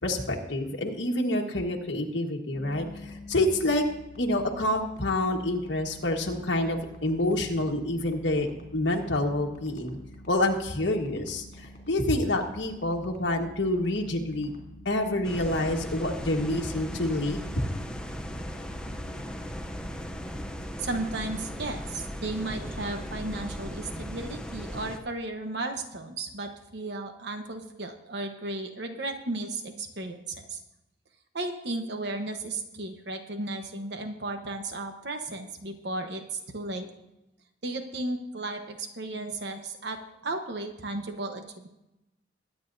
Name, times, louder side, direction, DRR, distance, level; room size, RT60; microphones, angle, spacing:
voice 1, 0.0-2.9 3.3-3.8 4.2-8.5 8.7-10.0 10.3-14.5 14.8-17.4, left 1 dB, 70° left, 0 dB, 1.4 m, -27 dB
sound 1, 2.5-21.5, left 1 dB, 55° left, 3.0 m, -48 dB
sound 2, 15.2-25.0, equal, 5° left, 0.6 m, -37 dB
voice 2, 20.8-30.6 31.3-36.9 37.6-41.7, right 2 dB, 65° right, 5 dB, 1.1 m, -34 dB
22.5 x 9.3 x 2.7 m, 0.92 s
head